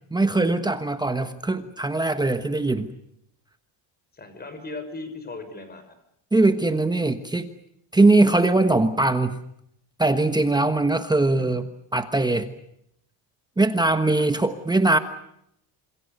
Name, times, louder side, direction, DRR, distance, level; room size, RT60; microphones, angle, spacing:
voice 1, 0.1-2.9 6.3-7.5 7.9-9.4 10.0-11.6 11.9-12.5 13.6-15.0, right 2 dB, 10° right, 8 dB, 1.2 m, -21 dB
voice 2, 4.1-6.0 11.4-11.5 14.2-14.3, left 3 dB, 20° left, 9 dB, 5.9 m, -37 dB
27.5 x 27.0 x 6.8 m, 0.74 s
cardioid pair, 155°, 45 cm